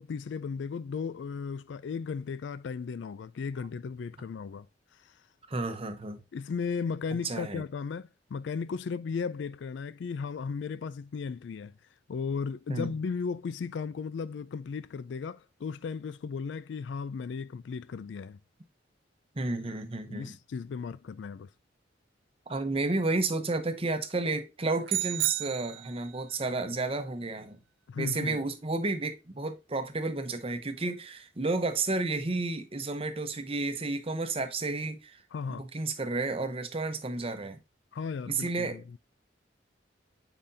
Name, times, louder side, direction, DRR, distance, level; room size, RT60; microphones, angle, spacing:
voice 1, 0.0-4.7 5.0-5.1 6.3-11.7 12.1-18.4 19.6-19.7 20.1-21.5 27.9-28.4 35.3-35.6 37.9-39.0, left 5 dB, 75° left, 0.4 m, -35 dB
voice 2, 5.5-6.2 7.2-7.6 12.7-12.9 19.4-20.3 22.5-27.6 28.0-35.2 35.5-37.6 38.3-38.8, right 3 dB, 30° right, 0.8 m, -31 dB
sound 1, 24.9-26.2, right 17 dB, 90° right, 0.3 m, -32 dB
7.6 x 5.1 x 2.7 m
head